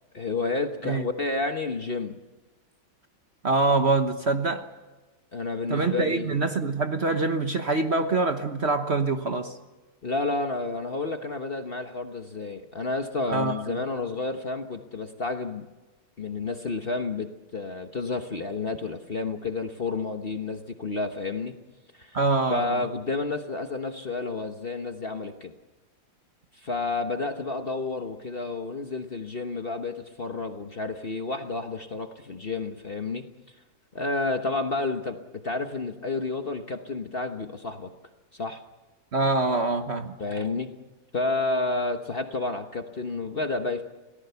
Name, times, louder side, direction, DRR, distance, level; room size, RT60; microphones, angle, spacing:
voice 1, 0.1-2.2 5.3-6.5 10.0-15.6 16.2-21.6 21.9-22.2 22.5-25.5 26.5-33.2 33.9-35.2 35.4-37.9 38.3-38.6 40.2-40.7 41.1-43.8, left 3 dB, 35° left, 6 dB, 1.1 m, -30 dB
voice 2, 3.4-4.7 5.7-9.5 13.3-13.8 22.1-22.8 39.1-40.1, right 3 dB, 40° right, 7 dB, 1.3 m, -25 dB
28.0 x 18.5 x 7.0 m, 1.2 s
omnidirectional pair, 2.0 m